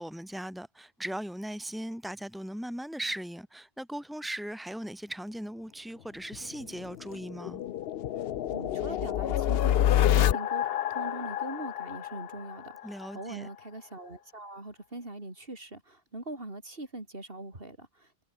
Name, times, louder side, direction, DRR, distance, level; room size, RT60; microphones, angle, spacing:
voice 1, 0.0-7.6 12.8-13.5, right 1 dB, ahead, 4.3 m, -38 dB
sound 1, 6.3-13.1, left 11 dB, 70° left, 0.8 m, -28 dB
voice 2, 8.5-18.2, right 2 dB, 60° right, 5.1 m, -42 dB
omnidirectional pair, 1.1 m